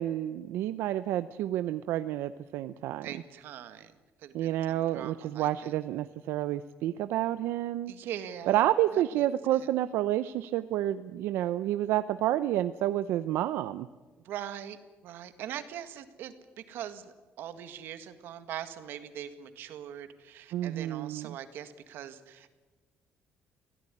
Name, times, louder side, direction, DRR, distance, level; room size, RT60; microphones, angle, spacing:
voice 1, 0.0-3.1 4.3-7.9 8.5-13.9 20.5-21.4, right 13 dB, 85° right, 12 dB, 0.7 m, -29 dB
voice 2, 3.0-3.9 4.2-5.7 7.9-8.6 8.9-9.2 9.5-9.7 14.2-14.8 15.0-22.5, right 10 dB, 65° right, 10 dB, 1.9 m, -42 dB
25.0 x 17.0 x 9.9 m, 1.3 s
cardioid pair, 175°, 4 cm